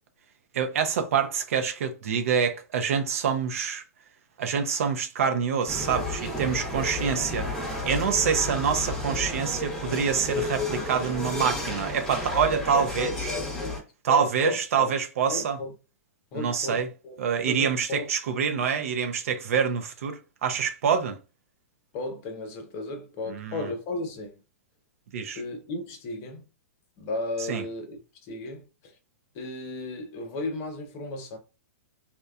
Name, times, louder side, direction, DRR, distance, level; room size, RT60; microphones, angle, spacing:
voice 1, 0.5-3.8 4.4-13.4 14.0-15.6 16.3-16.9 17.2-21.2 23.3-23.7 25.1-25.4 27.5-27.6, right 7 dB, 65° right, 0.6 m, -26 dB
sound 1, 5.7-13.8, left 2 dB, 5° left, 0.8 m, -32 dB
voice 2, 12.9-14.9 15.3-15.7 16.3-17.2 17.5-18.1 21.9-24.4 25.4-26.5 27.0-28.9 29.3-31.4, left 2 dB, 40° left, 0.9 m, -35 dB
2.9 x 2.2 x 2.3 m
hypercardioid pair, 120°, 8 cm